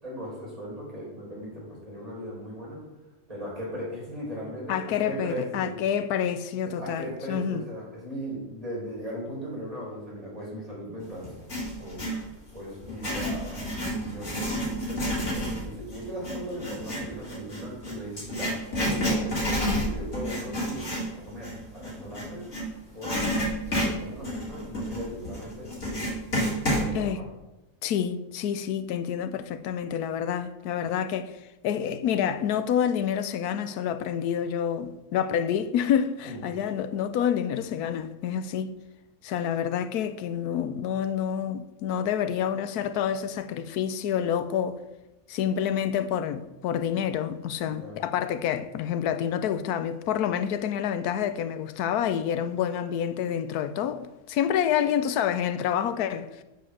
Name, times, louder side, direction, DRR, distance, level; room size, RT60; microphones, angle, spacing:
voice 1, 0.0-2.8 3.3-5.8 6.7-11.3 11.7-12.0 12.5-18.6 18.9-20.8 21.1-22.5 22.9-23.2 23.6-26.1 26.7-27.3 36.2-36.4 47.6-48.0, equal, 25° right, 4.7 m, -38 dB
voice 2, 4.7-7.7 26.9-27.2 27.8-38.7 39.2-44.8 45.3-56.4, left 9 dB, 90° left, 1.2 m, -28 dB
Writing, 11.2-12.2 12.8-22.6 23.0-26.9, equal, 60° left, 3.9 m, -29 dB
7.9 x 7.7 x 6.7 m
omnidirectional pair, 1.6 m